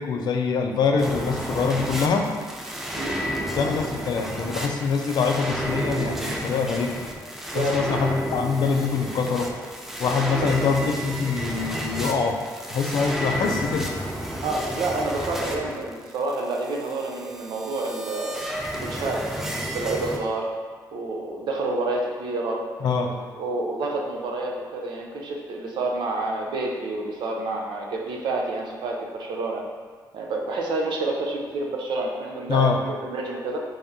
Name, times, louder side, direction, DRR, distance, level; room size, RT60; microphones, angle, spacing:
voice 1, 0.0-2.3 3.6-7.0 7.5-9.5 10.0-12.4 12.7-13.9 22.8-23.1 32.5-32.8, left 5 dB, 65° left, 3 dB, 0.4 m, -24 dB
sound 1, 1.0-20.2, equal, 5° right, 0.4 m, -31 dB
voice 2, 2.9-3.2 7.5-7.9 10.4-10.5 14.4-18.4 18.7-20.5 20.9-22.6 23.0-23.1 23.4-29.6 30.1-33.6, right 2 dB, 80° right, 0 dB, 0.6 m, -28 dB
3.4 x 2.7 x 3.6 m, 1.5 s
cardioid pair, 125°, 8 cm